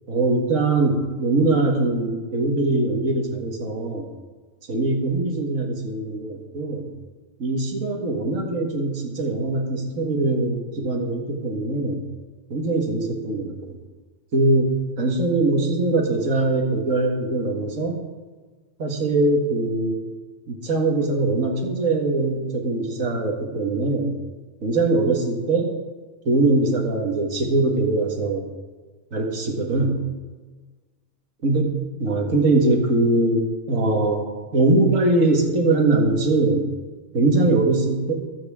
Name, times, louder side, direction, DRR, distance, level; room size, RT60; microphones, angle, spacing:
voice 1, 0.1-4.1 4.7-6.9 7.4-12.0 12.5-13.8 14.3-18.0 18.8-20.0 20.5-24.2 24.6-25.7 26.3-28.5 29.1-30.0 31.4-31.7 32.0-33.4 33.7-34.3 34.5-36.7 37.1-38.1, right 2 dB, 80° right, 2 dB, 2.1 m, -22 dB
22.0 x 8.1 x 3.6 m, 1.4 s
omnidirectional pair, 1.3 m